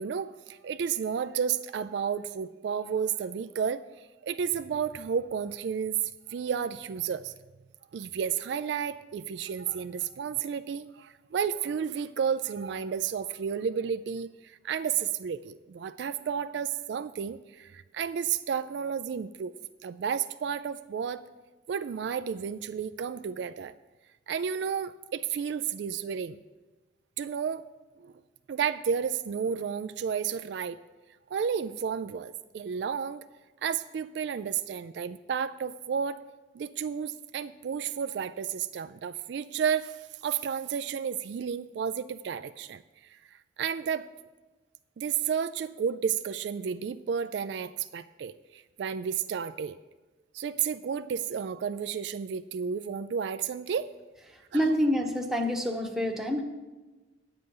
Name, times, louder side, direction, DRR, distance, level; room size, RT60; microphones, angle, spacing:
voice 1, 0.0-5.9 6.3-7.3 7.9-19.5 19.8-21.2 21.7-23.7 24.3-26.4 27.2-27.6 28.0-28.1 28.5-30.8 31.3-33.2 33.6-36.2 36.5-44.1 45.0-49.8 50.3-53.9 54.5-54.6, right 7 dB, 65° right, 12 dB, 0.3 m, -32 dB
voice 2, 54.5-56.4, equal, ahead, 1 dB, 0.9 m, -27 dB
9.9 x 7.8 x 5.4 m, 1.2 s
head